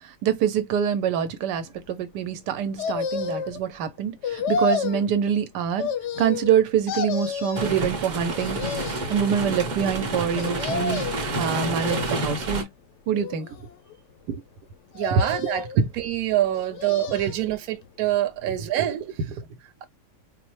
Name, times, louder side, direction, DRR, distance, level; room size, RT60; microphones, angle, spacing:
voice 1, 0.2-5.9 6.2-8.6 9.1-11.0 11.4-12.7 13.1-13.5 14.3-14.4 15.1-15.2 15.8-15.9 18.5-18.6, right 8 dB, 90° right, 1.2 m, -25 dB
sound 1, 2.8-3.6 4.2-5.1 5.8-6.6 6.9-7.7 8.3-9.2 10.4-11.3 11.8-12.5 13.1-13.9 14.9-15.8 16.5-17.4 17.8-17.9, left 5 dB, 65° left, 0.7 m, -30 dB
sound 2, 7.5-12.6, right 2 dB, 45° right, 0.6 m, -29 dB
voice 2, 14.9-19.1, right 12 dB, 65° right, 1.0 m, -26 dB
4.3 x 2.0 x 3.0 m
omnidirectional pair, 1.8 m